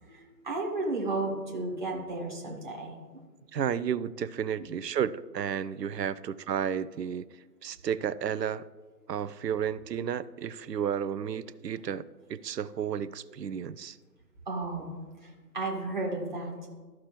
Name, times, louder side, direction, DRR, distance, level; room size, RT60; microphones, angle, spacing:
voice 1, 0.0-3.0 14.5-16.5, right 2 dB, 30° right, -1 dB, 1.3 m, -33 dB
voice 2, 3.5-7.2 7.6-8.7 9.1-12.0 12.3-14.0, right 8 dB, 75° right, 16 dB, 0.5 m, -32 dB
13.5 x 5.9 x 3.1 m, 1.4 s
figure-of-eight pair, 160°, 50 cm